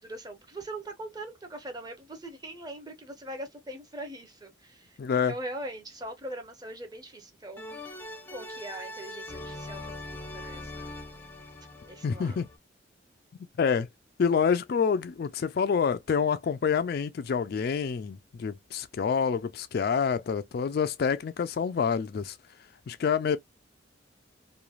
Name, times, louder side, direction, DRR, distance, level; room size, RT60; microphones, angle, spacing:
voice 1, 0.0-7.7 8.3-11.0 11.9-12.4, right 1 dB, 20° right, 0.8 m, -41 dB
voice 2, 5.0-5.3 12.0-12.5 13.6-13.9 14.2-22.4 22.9-23.4, left 6 dB, 55° left, 0.3 m, -27 dB
sound 1, 7.6-12.6, left 1 dB, 10° left, 0.6 m, -42 dB
3.1 x 2.3 x 2.4 m
head